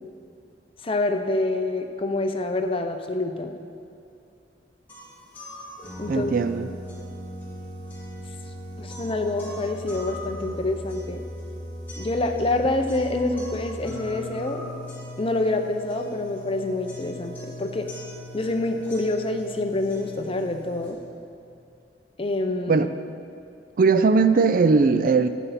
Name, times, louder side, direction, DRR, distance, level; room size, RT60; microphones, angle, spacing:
voice 1, 0.8-3.5 5.8-6.3 8.8-11.2 12.0-14.7 15.2-17.9 18.3-21.0 22.2-22.9, left 2 dB, 30° left, 5 dB, 0.6 m, -27 dB
sound 1, 4.9-20.9, left 1 dB, 10° left, 2.9 m, -38 dB
voice 2, 6.1-6.7 22.7-22.9 23.8-25.3, right 4 dB, 50° right, 12 dB, 0.3 m, -19 dB
13.0 x 9.2 x 4.2 m, 2.5 s
head